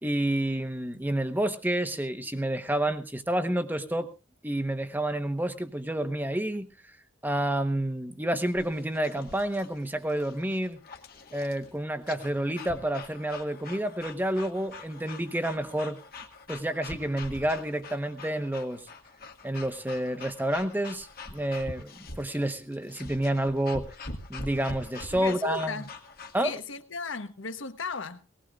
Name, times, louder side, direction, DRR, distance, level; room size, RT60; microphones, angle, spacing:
voice 1, 0.0-4.1 4.4-6.7 7.2-10.8 11.3-16.0 16.5-18.9 19.4-21.9 22.2-23.9 24.3-25.8 26.3-26.5, right 1 dB, 10° right, 1.0 m, -29 dB
sound 1, 8.5-26.5, left 3 dB, 50° left, 1.6 m, -44 dB
voice 2, 25.1-25.9 26.4-28.3, left 4 dB, 70° left, 1.1 m, -36 dB
19.0 x 18.5 x 2.4 m
head